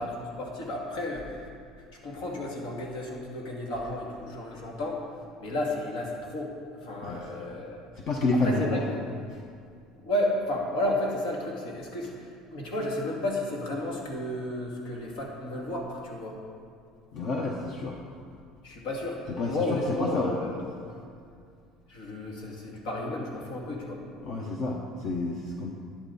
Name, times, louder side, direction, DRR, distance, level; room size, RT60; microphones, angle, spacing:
voice 1, 0.0-1.5 2.0-5.0 5.4-7.9 8.3-9.0 9.9-16.4 18.6-21.0 21.9-24.0, left 1 dB, 80° left, -1 dB, 2.5 m, -32 dB
voice 2, 8.1-8.8 17.1-18.0 19.4-20.3 24.2-25.7, left 2 dB, 50° left, 1 dB, 1.0 m, -29 dB
12.0 x 9.9 x 4.2 m, 2.3 s
cardioid pair, 130°, 0 cm